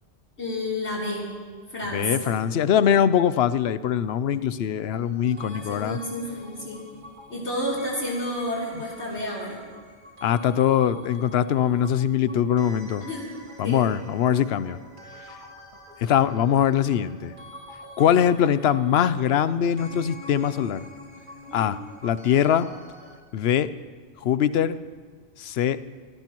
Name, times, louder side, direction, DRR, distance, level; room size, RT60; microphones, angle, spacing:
voice 1, 0.4-1.3 1.7-2.3 5.0-6.8 7.3-9.6 13.0-13.3 13.6-13.8 21.5-21.7, left 1 dB, 90° left, -6 dB, 3.8 m, -31 dB
voice 2, 1.9-6.0 10.2-13.1 13.6-14.8 16.0-17.3 18.0-20.8 21.5-22.7 23.3-23.7 24.2-24.8 25.4-25.8, left 9 dB, 70° left, 14 dB, 0.8 m, -22 dB
sound 1, 4.9-23.2, left 1 dB, 45° right, 2.2 m, -46 dB
26.0 x 17.5 x 3.1 m, 1.5 s
omnidirectional pair, 1.1 m